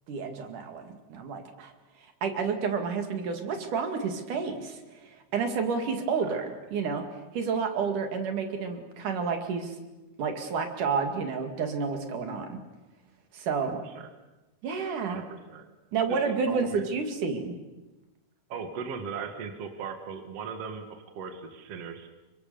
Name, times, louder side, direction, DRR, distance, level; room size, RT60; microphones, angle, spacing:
voice 1, 0.1-1.7 2.2-7.1 7.3-9.8 10.2-12.6 13.3-13.8 14.6-15.2 15.9-17.6, right 5 dB, 70° right, 6 dB, 3.7 m, -30 dB
voice 2, 13.6-14.1 15.1-15.7 16.1-16.8 18.5-22.1, right 6 dB, 50° right, 6 dB, 2.7 m, -38 dB
28.5 x 24.5 x 7.0 m, 1.1 s
omnidirectional pair, 3.7 m